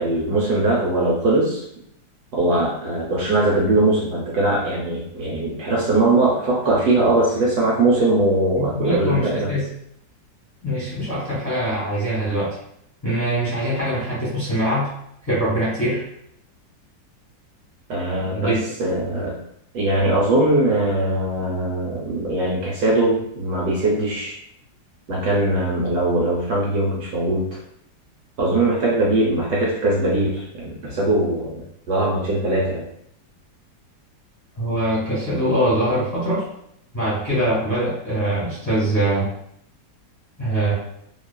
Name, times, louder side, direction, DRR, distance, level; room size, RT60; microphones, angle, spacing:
voice 1, 0.0-1.6 2.3-9.5 17.9-18.5 18.8-19.4 19.7-24.3 25.1-27.5 28.4-31.5 31.9-32.8, right 2 dB, 70° right, -5 dB, 1.1 m, -20 dB
voice 2, 8.5-9.7 10.6-12.5 13.0-14.9 15.2-16.0 18.2-18.6 34.6-36.4 36.9-39.3 40.4-40.7, right 1 dB, 10° left, -10 dB, 1.0 m, -23 dB
3.0 x 2.3 x 2.2 m, 0.73 s
omnidirectional pair, 1.9 m